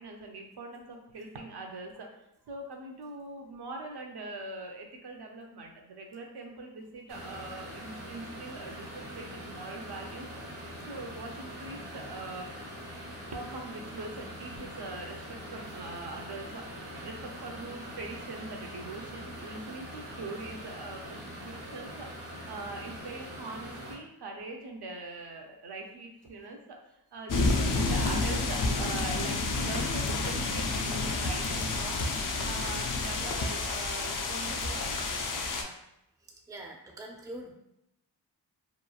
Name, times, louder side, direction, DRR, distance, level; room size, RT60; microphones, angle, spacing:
voice 1, 0.0-2.1 2.5-10.3 10.9-12.5 13.3-22.1 22.5-32.0 32.4-35.3 35.5-35.7, right 2 dB, 65° right, 1 dB, 0.6 m, -42 dB
sound 1, 7.1-23.9, equal, 80° right, 1.1 m, -43 dB
Regen inhet Bos kort, 27.3-35.6, left 3 dB, 50° left, 0.4 m, -30 dB
voice 2, 36.5-37.5, right 1 dB, 10° right, 0 dB, 0.4 m, -43 dB
3.0 x 2.2 x 2.3 m, 0.82 s
wide cardioid pair, 65°, 43 cm